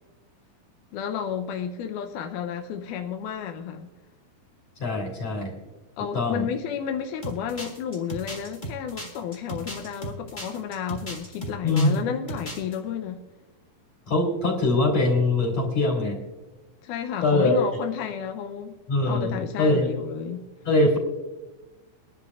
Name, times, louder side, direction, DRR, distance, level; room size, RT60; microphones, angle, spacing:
voice 1, 0.9-3.9 6.0-13.2 16.8-20.5, left 7 dB, 80° left, 1.8 m, -32 dB
voice 2, 4.8-5.5 6.1-6.5 11.6-12.0 14.1-16.2 17.2-17.5 18.9-19.9 20.6-21.0, left 2 dB, 45° left, 4.0 m, -22 dB
sound 1, 7.2-12.0 12.3-12.8, right 1 dB, 20° left, 1.3 m, -36 dB
23.5 x 11.0 x 2.4 m
omnidirectional pair, 4.3 m